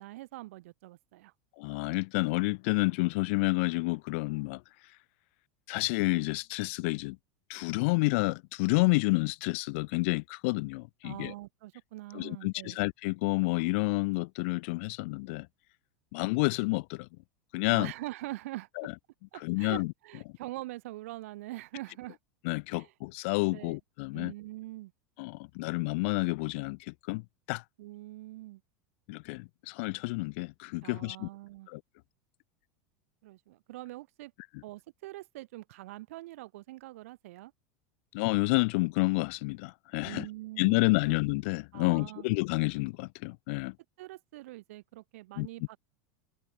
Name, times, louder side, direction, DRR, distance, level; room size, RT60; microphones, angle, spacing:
voice 1, 0.0-1.3 11.0-12.8 17.7-18.7 19.3-22.2 22.7-22.9 23.5-23.8 24.1-24.9 27.8-28.6 30.8-31.7 33.2-34.3 34.6-37.5 40.0-41.2 41.7-42.3 44.0-45.8, right 18 dB, 75° right, 2.9 m, -44 dB
voice 2, 1.6-4.6 5.7-7.2 7.5-11.3 12.1-15.5 16.1-17.1 17.5-17.9 18.8-18.9 19.4-19.9 22.4-24.3 25.2-27.2 27.5-27.6 29.1-31.3 31.7-31.8 38.1-40.2 40.6-43.7 45.4-45.5, left 27 dB, 60° left, 1.5 m, -29 dB
supercardioid pair, 140°, 8 cm